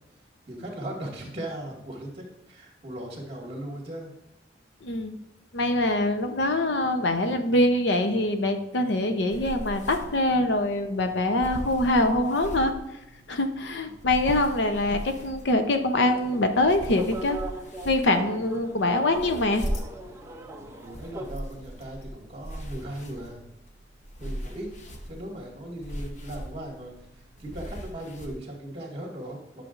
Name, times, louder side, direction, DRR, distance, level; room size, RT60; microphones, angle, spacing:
voice 1, 0.5-4.1 6.8-7.0 14.0-14.1 20.5-23.4 24.2-24.7 25.1-29.6, right 1 dB, 30° right, -1 dB, 2.1 m, -38 dB
voice 2, 4.8-5.2 5.5-12.7 13.3-17.4 17.8-19.6, left 1 dB, 75° left, 6 dB, 0.8 m, -24 dB
sound 1, 9.3-28.3, equal, 40° left, 0.9 m, -39 dB
sound 2, 16.0-21.3, right 1 dB, 15° right, 0.6 m, -40 dB
11.0 x 6.7 x 2.6 m, 0.92 s
head